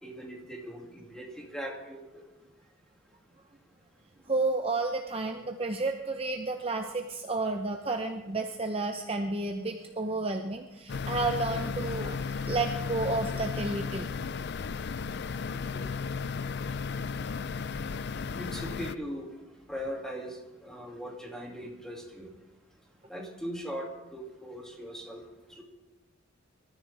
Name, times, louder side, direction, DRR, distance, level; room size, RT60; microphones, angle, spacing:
voice 1, 0.0-2.3 15.5-15.9 18.1-19.3 19.7-22.3 23.1-25.2 25.6-25.7, equal, 5° left, -1 dB, 2.4 m, -40 dB
voice 2, 4.3-14.1, right 3 dB, 30° right, 4 dB, 0.8 m, -31 dB
sound 1, 10.9-18.9, left 5 dB, 55° left, 0.4 m, -34 dB
25.0 x 13.5 x 3.5 m, 1.1 s
head